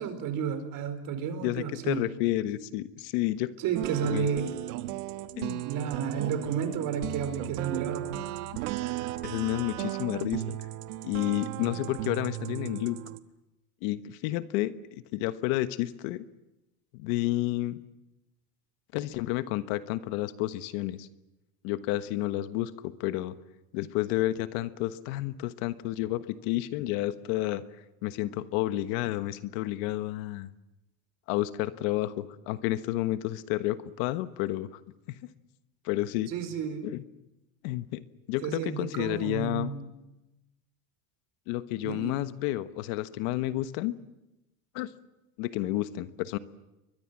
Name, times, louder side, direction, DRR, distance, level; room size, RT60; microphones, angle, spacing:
voice 1, 0.0-2.1 3.6-4.5 5.6-8.2 9.7-9.8 36.3-36.9 38.4-39.9 41.8-42.1, right 7 dB, 50° right, 9 dB, 4.7 m, -32 dB
voice 2, 1.4-3.5 4.0-4.3 5.4-5.6 9.2-10.6 11.0-13.0 13.8-14.7 15.1-16.2 16.9-17.8 18.9-21.1 21.6-23.3 23.7-27.6 28.0-30.5 31.3-34.7 35.8-36.3 36.8-37.0 37.6-38.0 38.3-39.7 41.5-44.0 44.7-44.9 45.4-46.4, left 16 dB, 70° left, 13 dB, 1.4 m, -30 dB
sound 1, 3.8-13.2, right 15 dB, 90° right, 1.4 m, -35 dB
29.5 x 23.0 x 7.6 m, 0.97 s
cardioid pair, 145°, 42 cm